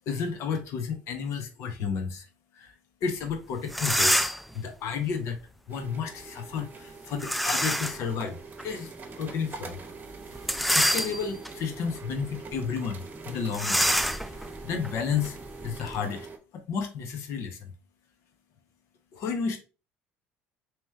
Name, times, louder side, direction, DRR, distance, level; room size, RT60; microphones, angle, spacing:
voice 1, 0.1-2.3 2.5-2.7 3.0-5.4 5.7-8.4 8.6-9.9 10.6-13.9 14.3-15.4 15.6-16.3 16.5-17.7 19.1-19.6, left 6 dB, 60° left, 1.0 m, -32 dB
sound 1, 3.3-3.4 3.7-4.5 7.2-8.1 8.6-8.7 10.4-11.5 12.1-12.3 12.5-12.7 13.5-16.0, equal, ahead, 0.3 m, -27 dB
sound 2, 5.7-16.4, right 4 dB, 35° right, 0.9 m, -43 dB
3.1 x 3.0 x 3.5 m
hypercardioid pair, 75°, 5 cm